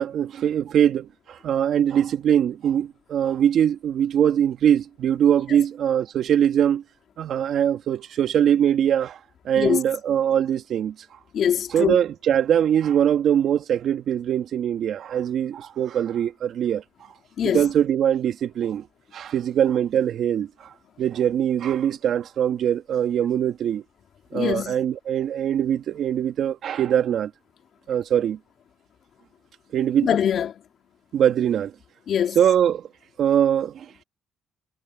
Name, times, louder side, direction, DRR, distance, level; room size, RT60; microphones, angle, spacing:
voice 1, 0.0-6.8 7.2-9.2 9.4-10.9 11.7-16.8 17.4-18.9 19.1-20.7 21.0-23.8 24.3-27.3 27.9-28.4 29.7-30.2 31.1-31.7 32.4-32.8 33.2-33.9, right 9 dB, 65° right, 2.5 m, -22 dB
voice 2, 11.3-12.0 17.4-17.6 24.3-24.8 30.0-30.5 32.1-32.4, left 9 dB, 60° left, 2.7 m, -23 dB
cardioid pair, 85°, 0 cm